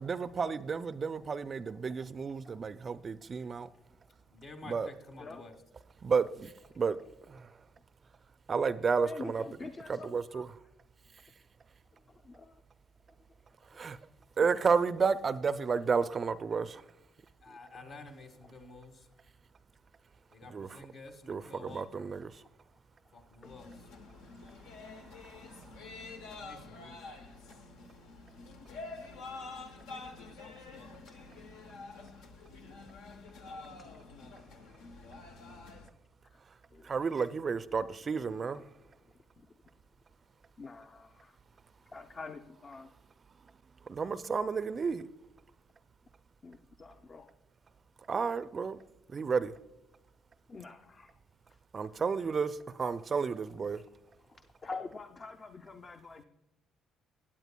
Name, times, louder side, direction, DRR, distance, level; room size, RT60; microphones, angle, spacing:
voice 1, 0.0-3.7 4.7-4.9 6.0-6.5 6.8-7.0 8.5-9.4 9.9-10.5 13.8-14.0 14.4-16.7 20.5-20.7 21.3-22.3 36.9-38.6 43.9-45.1 48.1-48.8 49.1-49.5 51.7-52.5 52.8-53.8, right 5 dB, 40° right, 14 dB, 0.4 m, -31 dB
voice 2, 2.3-2.8 3.4-3.5 3.9-4.0 5.2-5.4 9.0-10.4 12.0-12.6 13.9-14.0 23.4-23.5 24.3-24.4 33.5-33.6 36.3-36.4 36.7-37.4 37.7-37.8 38.5-38.6 39.0-39.8 40.6-41.4 41.9-42.9 46.4-47.3 50.5-51.2 51.5-51.6 53.7-53.8 54.1-56.2, left 4 dB, 40° left, 6 dB, 0.6 m, -47 dB
voice 3, 4.3-5.5 17.4-19.1 20.3-22.1 23.1-23.9 26.4-27.1, left 3 dB, 60° left, 4 dB, 1.5 m, -50 dB
sound 1, 23.4-35.9, left 3 dB, 75° left, 0.8 m, -48 dB
16.0 x 8.9 x 2.2 m, 0.92 s
hypercardioid pair, 55°, 0 cm